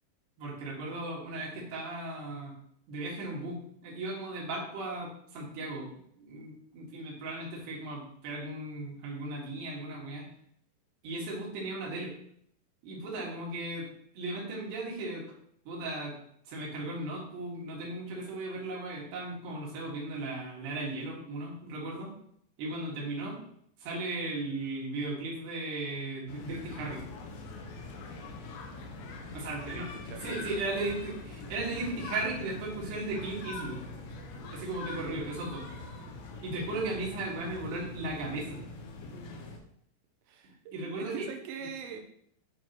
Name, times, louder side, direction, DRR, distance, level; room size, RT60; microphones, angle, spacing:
voice 1, 0.4-2.5 2.9-5.9 6.2-10.3 11.0-12.1 12.8-13.9 14.1-15.2 15.7-16.1 16.5-22.2 22.6-23.4 23.8-27.0 29.3-29.9 30.2-33.8 34.5-35.6 36.4-38.6 40.7-41.3, right 2 dB, 65° right, -4 dB, 3.6 m, -36 dB
sound 1, 26.3-39.6, left 3 dB, 75° left, 2.9 m, -43 dB
voice 2, 29.7-30.4 40.3-42.0, right 7 dB, 90° right, 4 dB, 3.2 m, -43 dB
9.1 x 4.5 x 2.9 m, 0.69 s
omnidirectional pair, 5.5 m